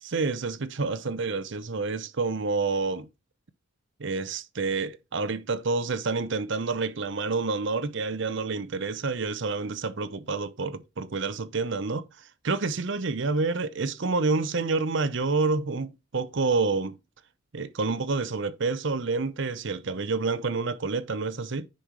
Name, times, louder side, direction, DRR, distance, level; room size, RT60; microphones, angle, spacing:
voice 1, 0.0-3.1 4.0-12.0 12.4-17.0 17.5-21.7, right 3 dB, 65° right, 0.7 m, -28 dB
10.0 x 5.3 x 3.0 m
head